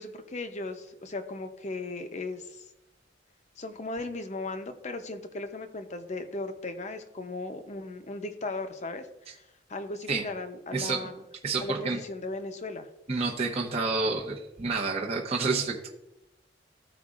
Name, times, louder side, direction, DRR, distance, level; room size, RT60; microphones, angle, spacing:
voice 1, 0.0-2.6 3.6-9.4 9.7-11.2 11.6-12.9, left 2 dB, 40° left, 8 dB, 0.7 m, -37 dB
voice 2, 10.7-11.0 11.4-12.0 13.1-15.9, right 4 dB, 35° right, -2 dB, 0.8 m, -29 dB
14.0 x 4.8 x 2.5 m, 0.93 s
head